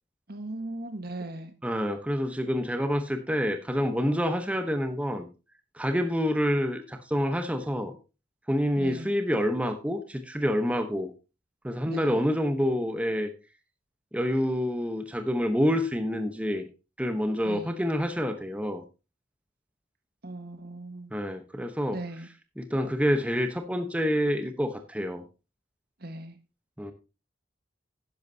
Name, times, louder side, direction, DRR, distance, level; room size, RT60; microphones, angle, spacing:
voice 1, 0.3-1.5 8.8-9.1 11.8-12.2 17.4-17.8 20.2-21.1 21.9-22.3 26.0-26.4, right 2 dB, 55° right, 9 dB, 1.5 m, -38 dB
voice 2, 1.6-5.3 5.7-7.9 8.5-11.1 11.6-13.3 14.1-16.7 17.0-18.8 21.1-22.0 22.6-25.2 26.8-26.9, equal, 5° right, 7 dB, 1.0 m, -27 dB
11.5 x 10.5 x 2.8 m, 0.30 s
head